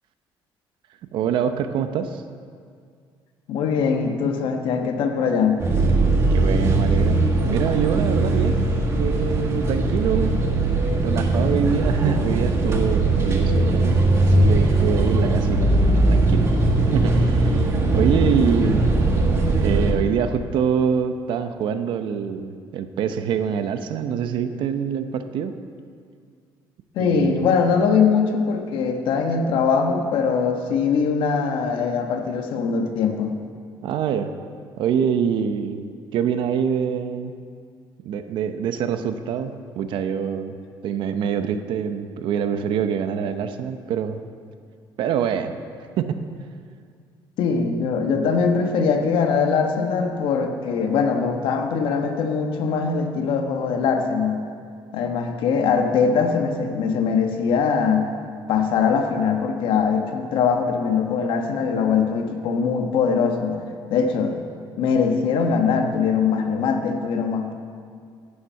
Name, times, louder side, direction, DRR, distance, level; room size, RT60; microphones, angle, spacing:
voice 1, 1.1-2.2 6.3-8.6 9.0-10.4 10.9-16.5 16.9-18.8 19.5-25.5 27.0-27.5 33.8-34.3 34.8-35.8 36.1-37.3 38.0-40.6 40.8-44.2 45.0-45.5 46.0-46.2, right 7 dB, 65° right, 9 dB, 0.8 m, -25 dB
voice 2, 3.5-5.6 18.2-18.5 26.9-33.3 47.4-54.5 54.9-58.1 58.5-63.6 63.9-64.4 64.8-67.5, left 5 dB, 70° left, 4 dB, 1.2 m, -22 dB
sound 1, 5.6-19.9, right 2 dB, 30° right, 1.5 m, -20 dB
11.0 x 7.3 x 8.1 m, 2.1 s
cardioid pair, 155°, 9 cm